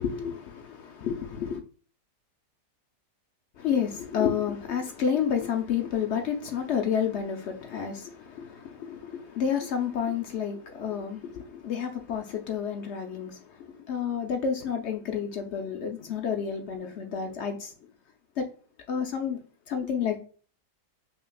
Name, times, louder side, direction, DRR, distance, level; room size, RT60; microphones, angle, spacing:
voice 1, 0.0-1.6 3.6-17.7 18.4-18.5 18.9-19.4 19.7-20.2, left 7 dB, 70° left, 0.6 m, -30 dB
5.6 x 2.8 x 2.2 m
omnidirectional pair, 1.8 m